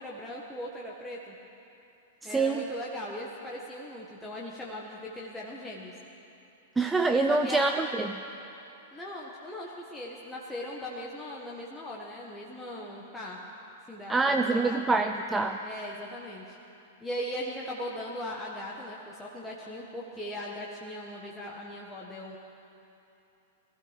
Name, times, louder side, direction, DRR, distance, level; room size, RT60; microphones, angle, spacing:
voice 1, 0.0-1.3 2.2-5.9 7.3-7.7 8.9-13.4 13.9-14.8 15.6-16.6 17.0-22.4, left 1 dB, 5° left, -4 dB, 1.4 m, -39 dB
voice 2, 2.2-2.6 6.8-8.2 14.1-15.6, right 3 dB, 10° right, 6 dB, 0.5 m, -26 dB
22.5 x 15.0 x 3.3 m, 2.9 s
figure-of-eight pair, 100°, 0 cm